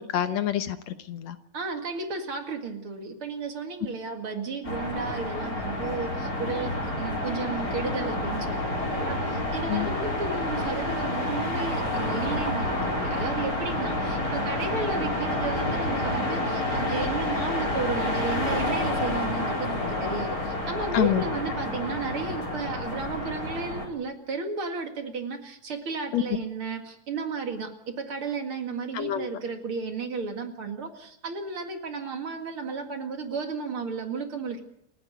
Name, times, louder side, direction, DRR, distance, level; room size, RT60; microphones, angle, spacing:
voice 1, 0.0-1.4 9.7-9.9 20.9-21.2 26.1-26.2 28.9-29.3, left 11 dB, 70° left, 10 dB, 2.2 m, -27 dB
voice 2, 1.5-34.6, right 4 dB, 50° right, 5 dB, 2.7 m, -33 dB
sound 1, 4.6-23.9, left 1 dB, 30° left, 4.6 m, -29 dB
29.0 x 9.7 x 9.4 m, 0.76 s
omnidirectional pair, 3.3 m